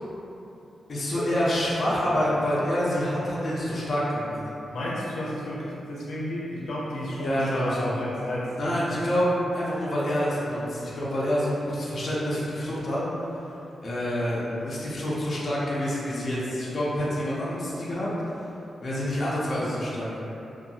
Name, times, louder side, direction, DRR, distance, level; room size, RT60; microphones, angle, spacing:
voice 1, 0.9-4.4 7.2-7.9 8.6-13.0 13.8-18.1 18.8-20.1, equal, 35° left, -8 dB, 0.4 m, -27 dB
voice 2, 4.7-8.8, left 1 dB, 90° left, -7 dB, 0.6 m, -32 dB
2.7 x 2.2 x 2.7 m, 2.9 s
wide cardioid pair, 165°, 0 cm